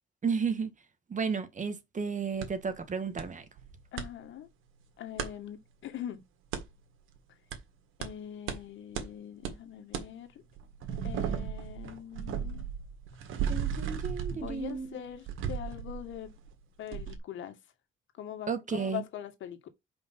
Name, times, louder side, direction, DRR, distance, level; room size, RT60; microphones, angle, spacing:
voice 1, 0.2-0.7 1.1-3.5 13.5-15.0 18.5-19.0, right 5 dB, 40° right, 1.9 m, -33 dB
sound 1, 2.4-2.5 3.2-3.3 3.6-4.1 5.2-5.3 6.5-6.6 7.5-7.6 8.0-8.1 8.5-8.6 8.9-9.1 9.4-9.6 9.9-10.1 10.5-16.5 16.9-17.2, right 8 dB, 85° right, 1.8 m, -35 dB
voice 2, 3.9-4.5 5.0-6.2 8.0-10.4 11.0-12.6 14.3-16.4 16.8-17.6 18.2-19.7, left 10 dB, 75° left, 1.9 m, -42 dB
5.5 x 5.3 x 5.6 m
cardioid pair, 90°, 20 cm